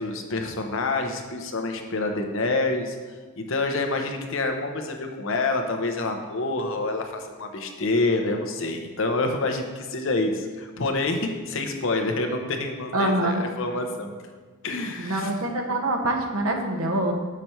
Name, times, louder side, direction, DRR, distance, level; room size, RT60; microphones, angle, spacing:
voice 1, 0.0-3.0 3.4-14.1 14.6-15.3, left 2 dB, 65° left, 5 dB, 0.8 m, -27 dB
voice 2, 12.9-13.4 15.0-17.1, right 1 dB, 80° right, 2 dB, 1.0 m, -25 dB
6.8 x 6.0 x 4.5 m, 1.4 s
head